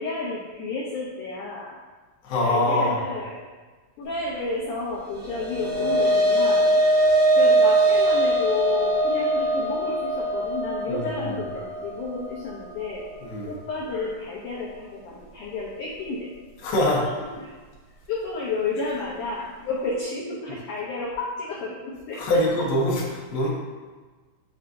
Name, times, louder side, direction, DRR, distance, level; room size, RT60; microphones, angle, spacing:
voice 1, 0.0-1.8 2.4-3.4 4.0-6.8 7.4-13.0 13.4-16.3 16.8-17.6 18.1-22.4, left 3 dB, 85° left, -5 dB, 1.8 m, -31 dB
voice 2, 2.2-3.0 10.9-11.3 13.2-13.5 16.6-17.0 22.2-23.5, left 1 dB, 70° left, -5 dB, 3.0 m, -23 dB
sound 1, 5.1-13.7, right 1 dB, 70° right, 1.9 m, -22 dB
9.8 x 4.3 x 2.6 m, 1.3 s
omnidirectional pair, 4.8 m